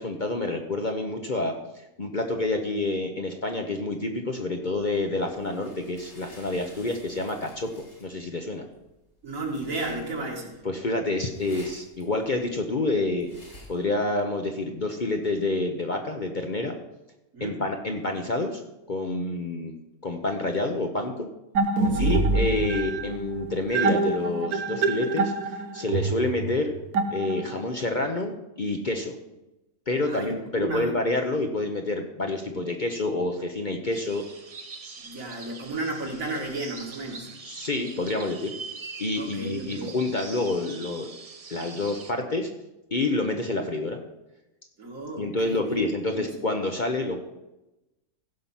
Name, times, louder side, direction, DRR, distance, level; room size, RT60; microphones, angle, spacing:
voice 1, 0.0-1.5 2.0-7.7 8.0-8.6 10.6-13.3 13.7-16.8 17.4-18.6 18.9-19.7 20.0-21.3 22.0-26.7 27.1-29.1 29.9-34.2 37.4-38.5 39.0-41.1 41.5-42.5 42.9-44.0 45.2-47.2, left 2 dB, 40° left, 4 dB, 0.9 m, -28 dB
sound 1, 4.7-13.9, left 1 dB, 75° left, 4.4 m, -52 dB
voice 2, 9.2-10.6 17.3-17.6 21.9-22.2 28.9-29.1 30.0-30.9 35.0-37.3 39.2-39.9 44.8-46.4, right 2 dB, 65° right, 0 dB, 2.5 m, -33 dB
sound 2, 21.5-27.7, right 3 dB, 85° right, 1.3 m, -26 dB
sound 3, 33.9-42.1, right 4 dB, 35° right, 0.6 m, -43 dB
15.5 x 5.8 x 5.6 m, 0.96 s
omnidirectional pair, 1.5 m